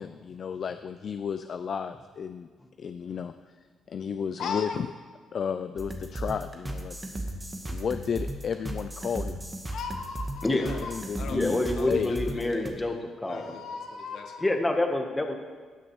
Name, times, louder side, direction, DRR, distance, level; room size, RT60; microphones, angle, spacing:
voice 1, 0.0-2.5 2.8-3.3 3.9-4.9 5.3-7.0 7.7-9.4 10.5-11.6 11.9-12.1 12.4-12.5, left 7 dB, 50° left, 10 dB, 0.3 m, -33 dB
voice 2, 4.4-4.8 9.7-11.4 11.8-12.9 13.3-14.5, left 5 dB, 70° left, 4 dB, 1.2 m, -38 dB
sound 1, 5.8-12.7, right 1 dB, 15° right, 1.2 m, -36 dB
voice 3, 11.3-13.6 14.4-15.3, left 2 dB, 15° left, 4 dB, 1.1 m, -27 dB
16.0 x 6.1 x 3.1 m, 1.5 s
cardioid pair, 90°, 0 cm